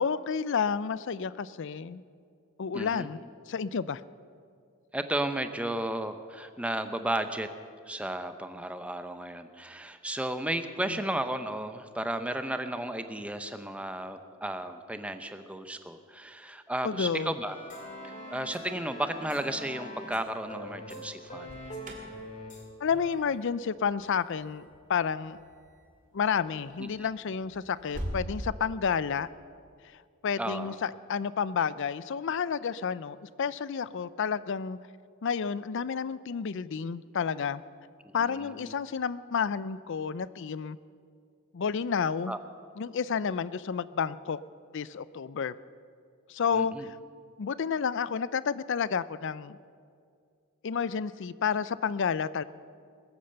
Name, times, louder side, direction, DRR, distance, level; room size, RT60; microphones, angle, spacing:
voice 1, 0.0-2.0 2.6-3.2 3.5-4.0 16.8-17.3 22.8-25.4 26.1-29.3 30.2-34.8 35.2-37.6 38.1-40.8 41.5-42.3 42.8-44.4 44.7-45.5 46.3-46.9 47.4-49.6 50.6-52.4, left 6 dB, 60° left, 17 dB, 0.4 m, -30 dB
voice 2, 2.7-3.1 4.9-7.5 7.9-17.6 18.0-21.6 26.8-27.1 30.4-30.8 38.0-38.7 42.3-42.4 46.5-46.9, right 1 dB, 5° right, 9 dB, 0.7 m, -34 dB
Game music Time of action, 17.5-22.6 22.9-23.1, equal, 35° left, 2.4 m, -43 dB
Alarm, 21.3-28.3, equal, 40° right, 2.4 m, -45 dB
20.5 x 8.7 x 6.8 m, 2.3 s
head